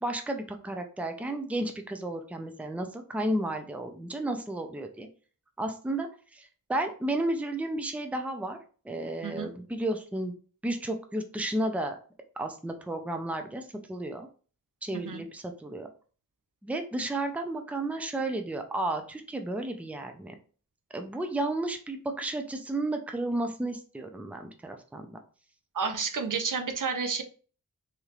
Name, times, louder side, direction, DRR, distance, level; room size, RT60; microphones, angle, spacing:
voice 1, 0.0-5.1 5.6-6.1 6.3-6.4 6.7-8.6 8.9-10.3 10.6-12.0 12.4-13.6 13.9-14.3 14.8-15.9 16.6-20.3 20.9-25.2, right 1 dB, 5° right, 5 dB, 0.5 m, -32 dB
voice 2, 25.7-27.2, right 5 dB, 60° right, 7 dB, 0.5 m, -30 dB
3.1 x 2.8 x 2.4 m, 0.39 s
wide cardioid pair, 55°, 36 cm